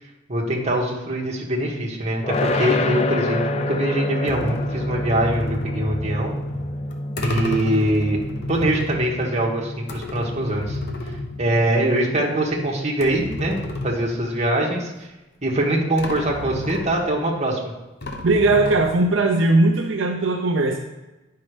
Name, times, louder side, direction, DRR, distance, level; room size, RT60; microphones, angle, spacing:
voice 1, 0.3-6.3 7.2-8.2 8.5-10.8 11.4-13.6 13.8-14.9 15.4-17.6, right 1 dB, 35° right, -2 dB, 1.6 m, -23 dB
sound 1, 2.2-13.2, left 1 dB, 30° left, 0.5 m, -28 dB
sound 2, 4.3-12.1 12.4-12.5 13.0-14.6 15.6-15.7 16.0-17.4 18.0-19.3, left 1 dB, 55° left, 1.0 m, -32 dB
voice 2, 18.2-20.8, right 2 dB, 65° right, 2 dB, 0.7 m, -19 dB
9.7 x 5.7 x 5.0 m, 1.1 s
head